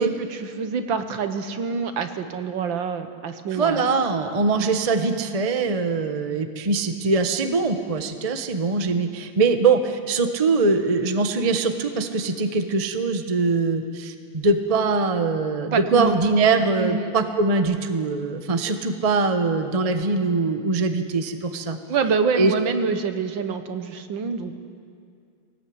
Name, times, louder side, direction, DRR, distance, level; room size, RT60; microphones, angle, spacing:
voice 1, 0.0-3.8 15.7-16.2 16.8-17.1 21.9-24.6, right 5 dB, 65° right, 8 dB, 1.7 m, -26 dB
voice 2, 3.5-21.8 22.3-22.5, right 4 dB, 35° right, 7 dB, 0.6 m, -22 dB
21.0 x 18.0 x 8.6 m, 2.3 s
omnidirectional pair, 2.4 m